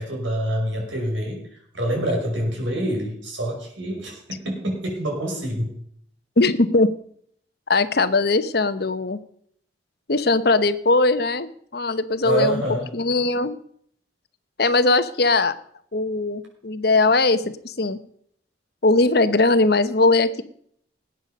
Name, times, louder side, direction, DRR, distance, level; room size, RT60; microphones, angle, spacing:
voice 1, 0.0-1.4 1.7-5.7 12.2-12.9, right 1 dB, 85° right, 1 dB, 5.6 m, -26 dB
voice 2, 6.4-6.9 7.7-9.2 10.1-12.6 12.9-13.6 14.6-15.5 15.9-18.0 18.8-20.4, left 3 dB, 55° left, 12 dB, 0.9 m, -20 dB
19.0 x 9.2 x 5.3 m, 0.64 s
head